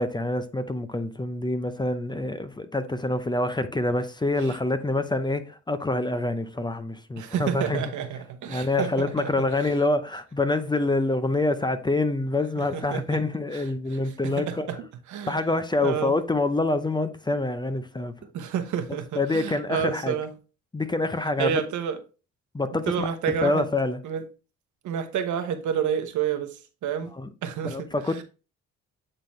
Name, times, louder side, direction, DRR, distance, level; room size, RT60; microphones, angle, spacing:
voice 1, 0.0-7.8 8.5-14.7 15.3-18.1 19.2-20.2 20.7-21.6 22.5-24.0 27.2-27.3 27.6-28.2, left 2 dB, 15° left, 0.6 m, -26 dB
voice 2, 7.2-9.5 12.6-13.2 13.5-13.6 13.9-14.0 14.2-14.8 15.1-16.2 18.3-20.3 21.4-22.0 22.9-23.7 24.0-24.2 24.8-27.1 27.4-28.2, right 8 dB, 75° right, 1.1 m, -30 dB
8.8 x 3.9 x 3.1 m
cardioid pair, 90°, 30 cm